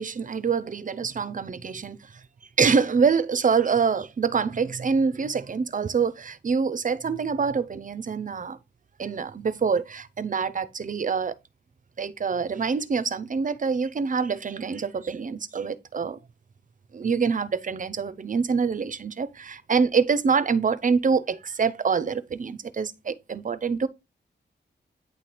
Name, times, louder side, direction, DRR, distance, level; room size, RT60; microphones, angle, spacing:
voice 1, 0.0-2.0 2.6-8.6 9.0-11.3 12.0-16.2 16.9-23.9, right 5 dB, 45° right, 0.6 m, -25 dB
9.1 x 3.2 x 4.2 m
wide cardioid pair, 95°, 19 cm